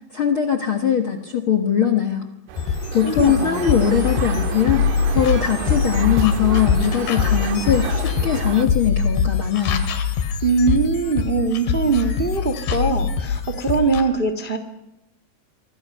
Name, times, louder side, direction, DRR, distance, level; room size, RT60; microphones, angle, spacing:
voice 1, 0.1-2.3 2.9-9.9, left 9 dB, 55° left, 7 dB, 1.5 m, -21 dB
sound 1, 2.5-8.7, right 10 dB, 85° right, 3.0 m, -32 dB
sound 2, 2.6-14.0, left 6 dB, 85° left, 4.2 m, -23 dB
voice 2, 3.0-3.7 10.4-14.6, right 4 dB, 25° right, 8 dB, 1.1 m, -22 dB
27.5 x 25.0 x 5.6 m, 0.88 s
omnidirectional pair, 4.5 m